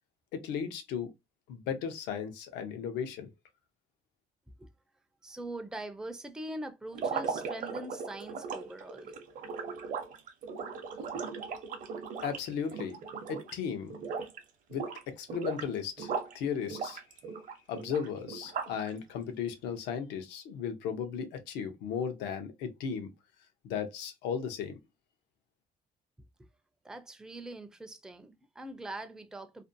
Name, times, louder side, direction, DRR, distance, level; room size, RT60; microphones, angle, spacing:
voice 1, 0.3-1.1 1.5-3.3 12.2-13.0 13.3-14.0 14.7-17.0 17.7-23.1 23.6-24.8, left 7 dB, 85° left, 0.6 m, -36 dB
voice 2, 5.2-9.1 26.8-29.6, right 1 dB, 5° right, 0.4 m, -42 dB
sound 1, 6.9-13.6 13.9-14.4 14.7-16.4 16.7-18.9, right 5 dB, 50° right, 0.7 m, -38 dB
2.5 x 2.1 x 2.6 m
cardioid pair, 110°, 17 cm